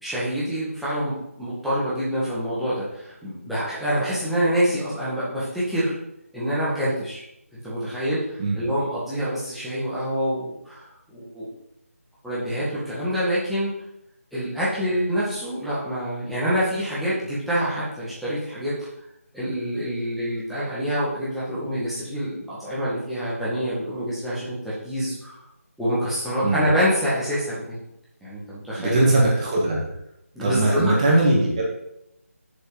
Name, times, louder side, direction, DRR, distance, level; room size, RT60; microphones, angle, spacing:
voice 1, 0.0-5.9 6.3-7.2 7.6-11.5 12.2-13.7 14.3-18.8 19.3-25.4 25.8-27.8 28.2-29.1 30.4-30.9, equal, ahead, -12 dB, 2.0 m, -26 dB
voice 2, 28.8-29.8 30.4-31.7, right 2 dB, 25° right, -4 dB, 2.2 m, -20 dB
6.7 x 6.4 x 5.1 m, 0.81 s
figure-of-eight pair, 160°, 8 cm